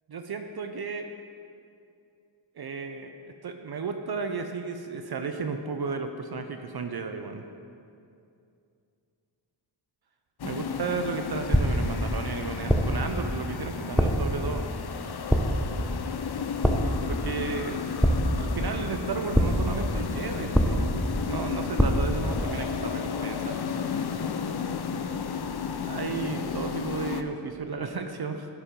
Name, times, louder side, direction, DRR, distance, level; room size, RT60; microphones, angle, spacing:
voice 1, 0.1-1.1 2.6-7.4 10.4-14.6 17.1-17.8 18.4-23.6 25.8-28.5, right 5 dB, 55° right, 6 dB, 0.6 m, -33 dB
sound 1, 10.4-27.2, left 6 dB, 55° left, 0.6 m, -33 dB
sound 2, 11.5-12.0 12.7-13.1 14.0-14.4 15.3-15.7 16.6-17.1 18.0-18.6 19.3-19.8 20.5-21.1 21.8-22.2, equal, ahead, 0.7 m, -23 dB
11.5 x 4.5 x 5.1 m, 2.5 s
cardioid pair, 50°, 47 cm